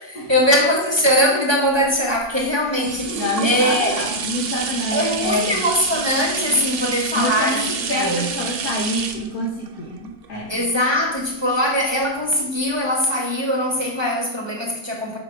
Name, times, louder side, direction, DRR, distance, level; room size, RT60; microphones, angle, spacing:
voice 1, 0.0-4.0 4.9-8.3 10.5-15.2, equal, 20° right, 1.1 m, -21 dB
sound 1, 1.8-11.5 12.0-12.1, right 5 dB, 55° right, 0.6 m, -29 dB
voice 2, 2.6-5.6 7.1-10.6, left 1 dB, 60° left, 1.7 m, -27 dB
7.1 x 6.5 x 4.7 m
omnidirectional pair, 1.9 m